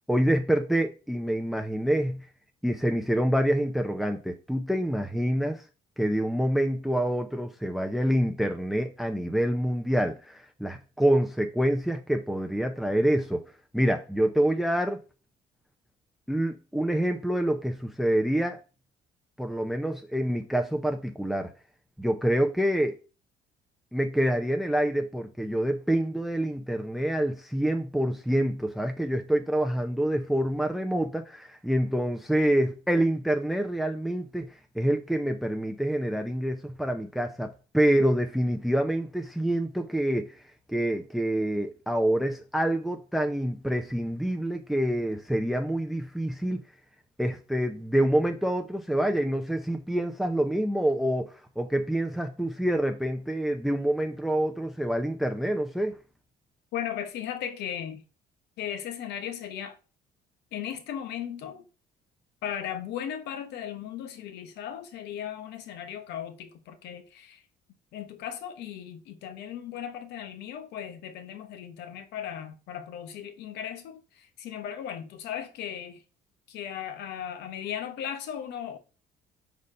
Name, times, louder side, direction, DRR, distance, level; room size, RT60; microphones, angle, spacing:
voice 1, 0.1-2.3 2.6-5.7 6.0-13.4 13.7-15.0 16.3-18.6 19.4-21.5 22.0-23.0 23.9-40.4 40.7-46.6 47.2-56.0, right 1 dB, ahead, 0.6 m, -27 dB
voice 2, 56.7-58.0 58.6-59.8 60.5-61.6 62.4-67.4 67.9-76.0 76.5-78.8, left 9 dB, 80° left, 1.1 m, -37 dB
5.0 x 4.1 x 5.4 m
cardioid pair, 110°, 17 cm